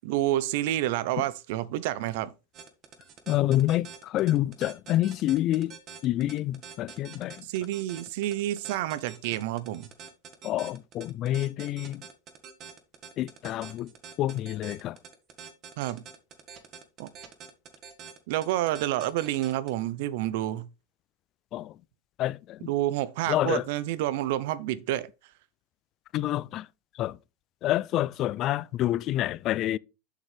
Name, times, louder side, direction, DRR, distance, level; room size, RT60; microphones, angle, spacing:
voice 1, 0.0-2.3 7.5-9.9 15.8-16.0 17.0-17.1 18.3-20.7 22.7-25.1, right 14 dB, 65° right, 0.6 m, -29 dB
sound 1, 2.5-19.7, right 7 dB, 40° right, 1.6 m, -46 dB
voice 2, 3.3-5.7 6.0-7.5 10.4-12.1 13.2-13.9 14.2-15.0 21.5-21.8 22.2-22.7 23.3-23.6 26.1-26.7 26.9-27.2 27.6-29.8, left 14 dB, 45° left, 0.3 m, -28 dB
7.5 x 6.3 x 3.4 m
supercardioid pair, 120°, 0 cm